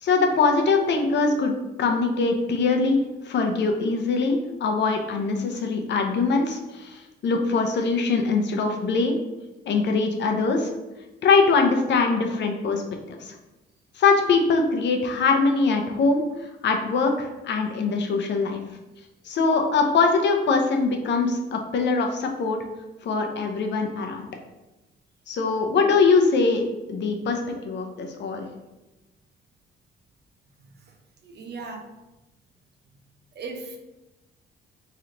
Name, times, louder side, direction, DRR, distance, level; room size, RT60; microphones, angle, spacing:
voice 1, 0.0-1.5 1.8-3.0 3.2-9.2 9.7-10.7 11.2-12.8 13.1-13.3 14.0-18.6 19.3-22.6 23.0-24.2 25.3-26.6 26.9-28.5, left 4 dB, 65° left, 3 dB, 0.7 m, -22 dB
voice 2, 31.2-31.8 33.4-33.8, right 3 dB, 55° right, 3 dB, 0.7 m, -36 dB
3.2 x 2.9 x 3.8 m, 1.0 s
cardioid pair, 90°, 20 cm